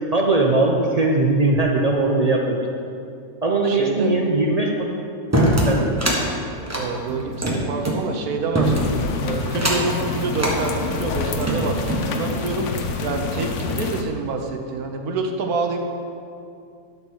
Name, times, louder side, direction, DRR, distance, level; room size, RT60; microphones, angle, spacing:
voice 1, 0.1-2.8 3.4-4.9 5.7-5.9, right 2 dB, 50° right, 0 dB, 0.4 m, -20 dB
voice 2, 3.6-4.1 6.7-8.7 9.2-15.9, right 3 dB, 80° right, 4 dB, 1.4 m, -27 dB
sound 1, 5.3-6.2 6.6-8.0 8.5-9.1 9.5-9.9 10.4-10.6 11.2-12.1, right 1 dB, 10° right, 1.0 m, -22 dB
sound 2, 8.6-14.0, left 4 dB, 60° left, 1.0 m, -27 dB
12.0 x 4.5 x 6.3 m, 2.5 s
omnidirectional pair, 1.6 m